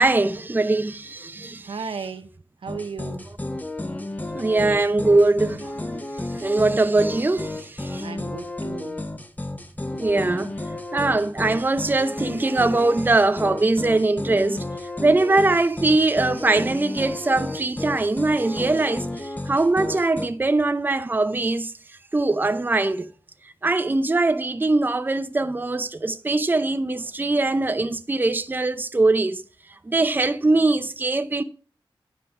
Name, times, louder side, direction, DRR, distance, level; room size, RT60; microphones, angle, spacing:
voice 1, 0.0-1.7 4.3-5.9 6.1-8.0 9.9-10.6 10.9-14.6 15.0-21.7 22.1-23.1 23.6-29.4 29.9-31.4, right 2 dB, 20° right, 0.6 m, -22 dB
voice 2, 1.6-2.3 2.6-3.3 8.0-9.1, right 5 dB, 80° right, 0.9 m, -35 dB
sound 1, 2.7-20.3, left 2 dB, 20° left, 0.8 m, -32 dB
9.7 x 5.1 x 6.0 m
wide cardioid pair, 95°, 9 cm